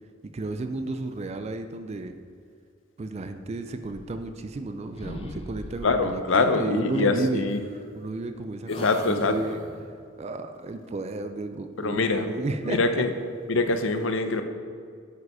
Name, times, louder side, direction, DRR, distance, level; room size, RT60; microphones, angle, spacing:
voice 1, 0.3-2.2 3.0-7.4 8.0-9.6 10.2-13.1, right 2 dB, 35° right, 9 dB, 0.4 m, -32 dB
sound 1, 3.8-4.7 4.9-6.1 7.5-8.3 8.7-9.9, left 1 dB, 30° left, 0.7 m, -40 dB
voice 2, 5.8-7.6 8.7-9.4 11.8-12.3 12.6-13.1 13.5-14.4, left 3 dB, 70° left, 8 dB, 0.7 m, -24 dB
8.1 x 5.0 x 4.8 m, 2.3 s
head